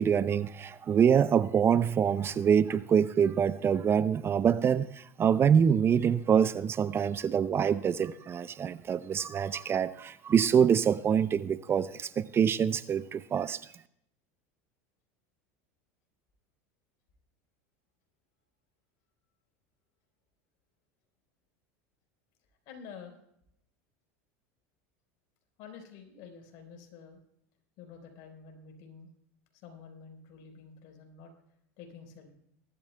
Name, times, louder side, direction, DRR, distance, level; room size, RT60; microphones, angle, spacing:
voice 1, 0.0-13.6, right 7 dB, 30° right, 0.5 m, -25 dB
voice 2, 22.6-23.2 25.6-27.2 27.8-29.1 29.6-31.3 31.8-32.3, left 6 dB, 60° left, 4.2 m, -49 dB
21.5 x 12.5 x 2.3 m
hypercardioid pair, 100°, 8 cm